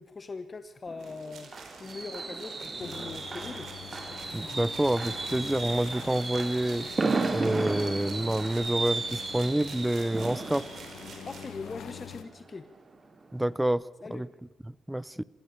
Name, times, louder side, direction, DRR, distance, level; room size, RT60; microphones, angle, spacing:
voice 1, 0.0-3.7 11.3-12.6 14.0-14.3, left 4 dB, 35° left, 1.1 m, -41 dB
Fireworks, 0.9-12.6 12.9-13.2 13.5-13.6, right 3 dB, 30° right, 2.7 m, -34 dB
sound 1, 1.0-12.2, right 5 dB, 60° right, 4.8 m, -49 dB
sound 2, 2.8-12.2, left 9 dB, 65° left, 1.3 m, -46 dB
voice 2, 4.3-6.9 7.3-10.7 13.3-14.3 14.7-15.2, right 1 dB, 10° right, 0.6 m, -28 dB
26.0 x 16.0 x 6.7 m
supercardioid pair, 60°, 0 cm